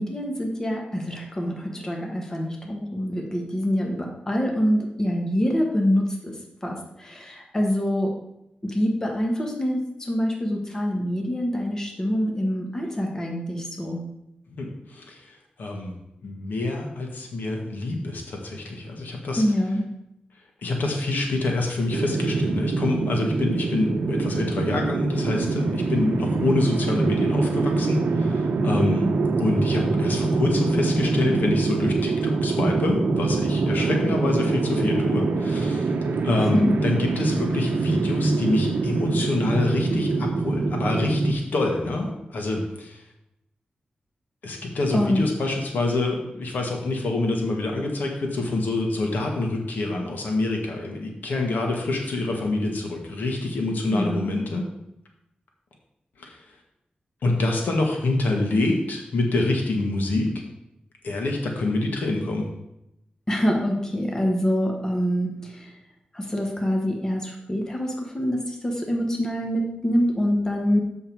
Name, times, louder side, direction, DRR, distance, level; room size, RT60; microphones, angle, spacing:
voice 1, 0.0-6.3 6.6-8.1 8.6-14.0 19.4-19.8 36.5-36.7 44.9-45.2 53.9-54.4 63.3-65.7 66.1-70.8, equal, 20° left, 0 dB, 1.2 m, -25 dB
voice 2, 14.6-15.9 16.2-19.4 20.6-29.1 29.4-35.9 36.2-43.0 44.4-54.7 56.2-56.4 57.2-60.3 61.0-62.4, left 2 dB, 85° left, 1 dB, 1.6 m, -26 dB
sound 1, 21.9-41.3, right 3 dB, 80° right, 0.7 m, -24 dB
7.4 x 6.3 x 4.6 m, 0.84 s
wide cardioid pair, 165°, 3 cm